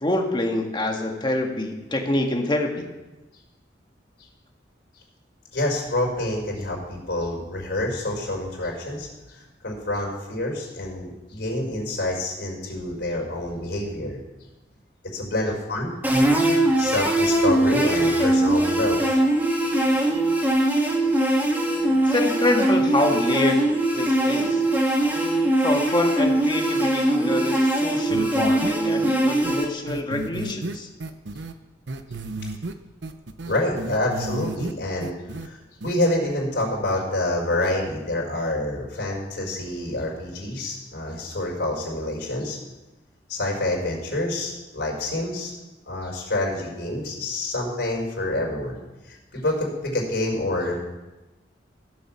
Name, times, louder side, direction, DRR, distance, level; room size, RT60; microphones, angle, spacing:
voice 1, 0.0-2.9 22.0-23.6 23.9-24.6 25.6-30.9, left 1 dB, 25° left, 2 dB, 1.7 m, -25 dB
voice 2, 5.5-14.2 15.1-15.9 16.8-19.2 33.4-35.1 35.4-35.6 35.8-42.6 43.3-45.5 45.9-48.8 49.1-50.7, left 1 dB, 65° left, -2 dB, 4.6 m, -27 dB
sound 1, 16.0-29.7, right 1 dB, 10° right, 1.8 m, -21 dB
sound 2, 28.1-28.7 29.0-29.1 29.4-29.5 29.9-31.5 31.9-32.7 33.0-34.7 35.0-35.5 35.8-35.9, right 2 dB, 75° right, 0.9 m, -32 dB
15.5 x 7.7 x 7.3 m, 1.1 s
head